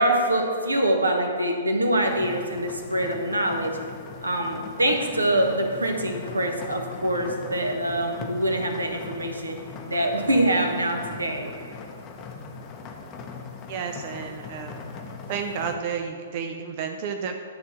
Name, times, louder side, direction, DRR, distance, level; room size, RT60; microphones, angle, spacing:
voice 1, 0.0-3.8 4.2-9.6 9.9-11.5, right 1 dB, 80° right, 3 dB, 1.1 m, -24 dB
sound 1, 2.0-15.7, left 4 dB, 30° left, 0.8 m, -40 dB
voice 2, 13.7-14.9 15.3-17.3, right 6 dB, 40° right, 5 dB, 0.5 m, -31 dB
10.5 x 3.5 x 7.0 m, 2.2 s
figure-of-eight pair, 115°, 0 cm